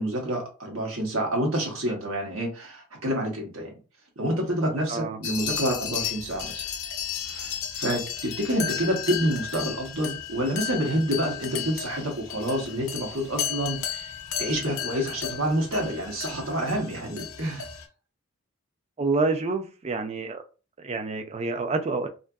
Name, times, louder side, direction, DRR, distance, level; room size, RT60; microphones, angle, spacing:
voice 1, 0.0-3.7 4.2-6.6 7.2-14.1 14.4-17.7, equal, 80° right, 1.0 m, -28 dB
sound 1, 5.2-17.9, left 8 dB, 80° left, 0.5 m, -34 dB
voice 2, 19.0-20.4 20.8-22.1, right 3 dB, 30° right, 0.4 m, -28 dB
2.6 x 2.4 x 2.3 m
head